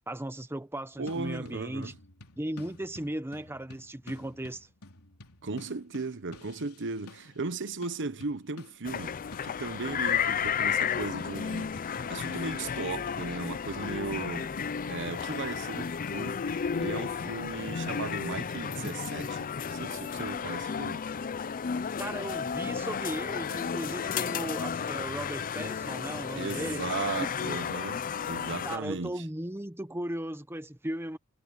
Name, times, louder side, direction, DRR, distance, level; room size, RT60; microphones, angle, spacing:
voice 1, 0.1-1.9 2.4-4.7 22.0-26.8 27.4-27.6 28.6-31.2, right 1 dB, 10° right, 1.0 m, -37 dB
sound 1, 0.9-7.4 7.8-9.8 10.1-20.3, left 2 dB, 80° left, 3.3 m, -51 dB
voice 2, 1.0-2.0 5.4-9.2 9.4-14.5 14.9-21.0 26.4-29.2, right 3 dB, 55° right, 1.0 m, -37 dB
sound 2, 8.8-28.8, left 7 dB, 40° left, 0.5 m, -33 dB
head